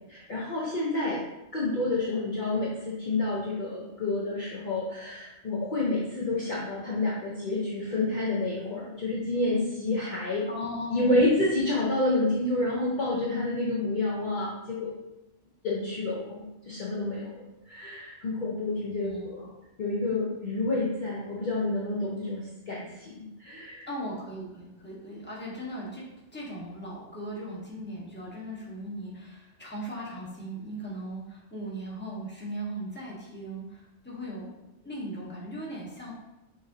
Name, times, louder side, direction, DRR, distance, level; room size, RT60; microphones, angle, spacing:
voice 1, 0.1-1.2 1.5-10.5 10.9-14.9 15.6-17.3 17.7-19.4 19.8-23.9, left 2 dB, 45° left, -5 dB, 0.8 m, -29 dB
voice 2, 10.5-11.2 19.0-19.5 23.9-26.1 26.3-34.5 34.8-36.1, right 1 dB, 10° left, -6 dB, 1.2 m, -38 dB
6.3 x 3.1 x 2.7 m, 0.95 s
omnidirectional pair, 1.2 m